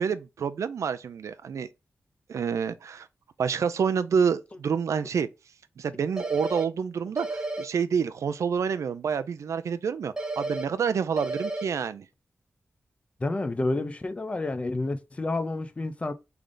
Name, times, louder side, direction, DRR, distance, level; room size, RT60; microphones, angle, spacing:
voice 1, 0.0-1.7 2.3-3.1 3.4-5.3 5.8-12.1, right 6 dB, 85° right, 0.4 m, -28 dB
sound 1, 6.2-6.6 7.2-7.6 10.2-10.6 11.2-11.6, right 2 dB, 15° right, 0.7 m, -32 dB
voice 2, 13.2-16.1, left 2 dB, 25° left, 0.5 m, -29 dB
3.8 x 3.4 x 3.8 m
wide cardioid pair, 160°, 5 cm